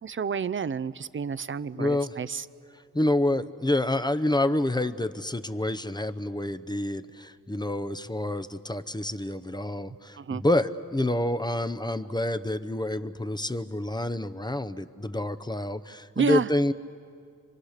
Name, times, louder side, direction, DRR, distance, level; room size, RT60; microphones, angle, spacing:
voice 1, 0.0-2.5 10.2-10.4 16.2-16.5, right 6 dB, 40° right, 15 dB, 0.5 m, -29 dB
voice 2, 1.8-2.1 2.9-16.7, left 1 dB, 15° left, 11 dB, 0.7 m, -28 dB
27.0 x 25.0 x 6.6 m, 2.4 s
wide cardioid pair, 95°, 31 cm